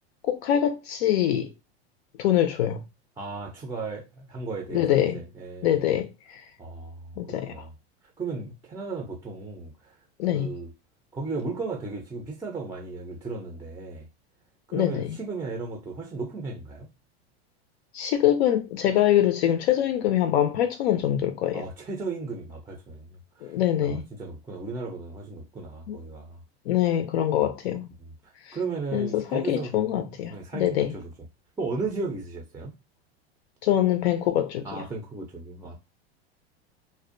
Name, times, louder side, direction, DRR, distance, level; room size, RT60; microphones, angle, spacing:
voice 1, 0.2-1.5 2.2-2.8 4.7-5.2 5.6-6.4 7.2-7.6 10.2-10.5 14.7-15.2 17.9-21.6 23.4-24.0 25.9-26.0 26.7-27.9 28.4-28.6 28.9-30.9 33.6-34.9, left 11 dB, 75° left, 0.5 m, -24 dB
voice 2, 3.2-6.0 6.6-7.7 8.2-9.9 10.3-10.7 11.1-14.1 14.7-16.9 21.5-23.5 23.8-26.4 27.3-27.4 28.0-31.1 31.6-32.7 34.6-35.8, right 3 dB, 10° right, 0.4 m, -35 dB
2.5 x 2.1 x 2.5 m
hypercardioid pair, 115°, 32 cm